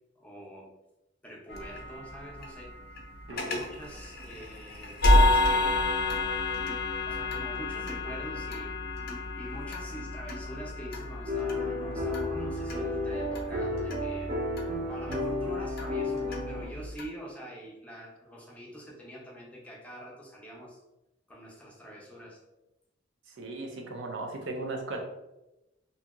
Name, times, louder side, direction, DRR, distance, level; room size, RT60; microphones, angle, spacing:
voice 1, 0.2-0.7 1.2-2.7 3.3-5.9 7.0-8.7 9.3-14.3 14.9-20.8 21.3-22.4, equal, 5° left, -4 dB, 0.6 m, -44 dB
sound 1, 1.5-17.0, left 1 dB, 55° left, 0.5 m, -30 dB
voice 2, 3.3-3.6 23.3-25.0, right 2 dB, 80° right, 2 dB, 0.6 m, -37 dB
sound 2, 11.2-16.7, left 2 dB, 40° right, 0.7 m, -32 dB
2.7 x 2.7 x 2.3 m, 0.94 s
head